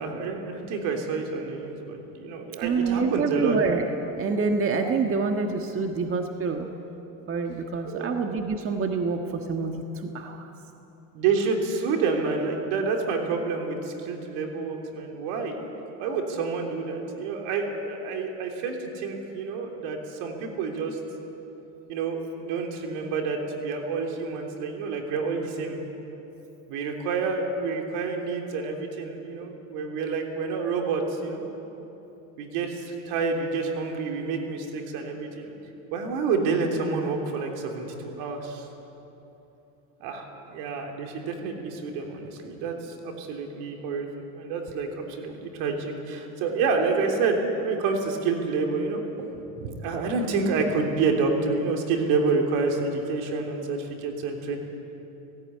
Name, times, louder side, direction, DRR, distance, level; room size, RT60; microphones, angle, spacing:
voice 1, 0.0-3.6 7.9-8.1 11.1-15.6 16.0-21.0 21.9-25.8 26.7-31.4 32.4-35.6 35.9-38.7 40.0-44.1 44.3-49.0 49.6-54.6, right 4 dB, 75° right, 2 dB, 3.4 m, -28 dB
voice 2, 2.6-3.9 4.2-6.7 7.3-10.5, right 4 dB, 35° right, 4 dB, 1.5 m, -27 dB
17.5 x 16.5 x 9.4 m, 3.0 s
supercardioid pair, 105°, 40 cm